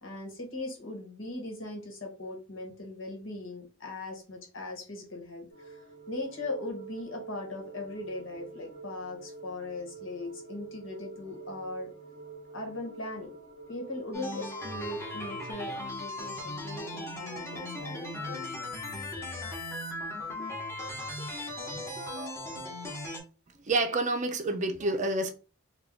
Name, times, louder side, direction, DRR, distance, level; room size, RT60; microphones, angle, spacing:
voice 1, 0.0-5.8 6.1-11.9 12.5-13.3 13.7-18.5 21.7-21.8, left 2 dB, 70° left, 1.3 m, -39 dB
sound 1, 5.5-15.5, right 4 dB, 35° left, 1.9 m, -47 dB
sound 2, 14.1-23.2, left 1 dB, 15° left, 1.0 m, -38 dB
voice 2, 23.6-25.3, right 2 dB, 35° right, 0.5 m, -28 dB
3.5 x 2.3 x 3.5 m
head